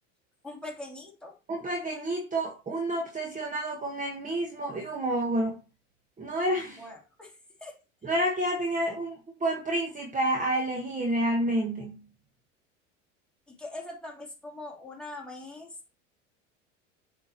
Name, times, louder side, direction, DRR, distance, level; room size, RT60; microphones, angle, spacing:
voice 1, 0.4-1.4 6.8-7.8 13.5-15.9, left 2 dB, ahead, 2.8 m, -42 dB
voice 2, 1.5-5.6 6.2-6.8 8.0-12.0, right 1 dB, 20° right, 1.4 m, -29 dB
8.0 x 4.6 x 3.0 m
hypercardioid pair, 85°, 37 cm